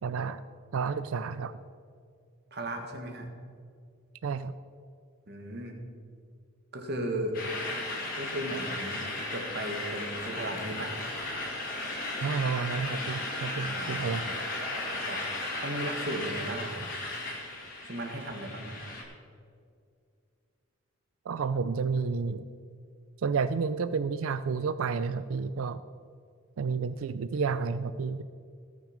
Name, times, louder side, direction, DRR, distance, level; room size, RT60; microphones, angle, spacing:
voice 1, 0.0-0.4 0.7-1.6 4.2-4.5 12.2-14.3 21.3-22.5 23.2-25.8 26.6-28.2, right 5 dB, 75° right, 13 dB, 0.4 m, -30 dB
voice 2, 2.5-3.3 5.3-5.8 6.7-7.4 8.2-10.9 13.8-14.2 15.0-15.2 15.6-16.9 17.8-18.7, right 1 dB, 50° right, 3 dB, 1.7 m, -36 dB
sound 1, 7.3-19.0, left 2 dB, 40° left, 2.6 m, -35 dB
18.5 x 6.3 x 5.2 m, 2.3 s
head